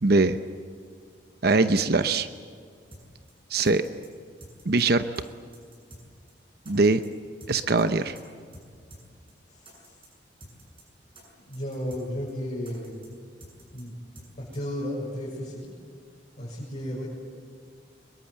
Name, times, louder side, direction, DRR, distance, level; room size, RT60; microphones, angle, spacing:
voice 1, 0.0-0.4 1.4-2.3 3.5-3.8 4.6-5.0 6.7-7.0 7.5-8.2, right 3 dB, 55° right, 10 dB, 0.9 m, -21 dB
sound 1, 2.9-3.0 3.3-3.4 3.6-4.1 4.4-4.8 5.1-5.2 5.5-6.0 6.3-6.4 6.6-7.1 7.4-7.8 8.1-8.2 8.5-8.6 8.9-9.0 9.3-9.4 9.6-10.1 10.4-10.8 11.1-11.2 11.5-12.0 12.3-12.4 12.6-13.1 13.4-13.8 14.1-14.3 14.5-14.6, right 1 dB, 30° right, 7.8 m, -49 dB
voice 2, 9.5-9.9 11.3-13.0 13.7-14.0 14.4-15.7 16.4-17.1, equal, 40° left, -7 dB, 6.8 m, -34 dB
24.5 x 22.5 x 8.1 m, 2.1 s
head